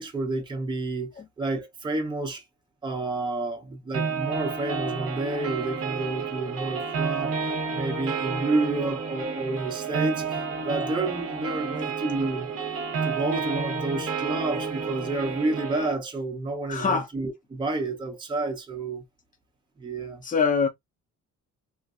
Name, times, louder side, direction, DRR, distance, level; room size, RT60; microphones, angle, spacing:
voice 1, 0.0-1.1 1.4-2.4 2.8-12.5 13.0-19.0 19.8-20.2, right 2 dB, 15° right, 0.7 m, -30 dB
sound 1, 3.9-15.9, right 5 dB, 50° right, 0.9 m, -30 dB
voice 2, 16.7-17.1 20.2-20.7, left 5 dB, 25° left, 0.8 m, -23 dB
3.1 x 2.6 x 2.4 m
cardioid pair, 160°, 31 cm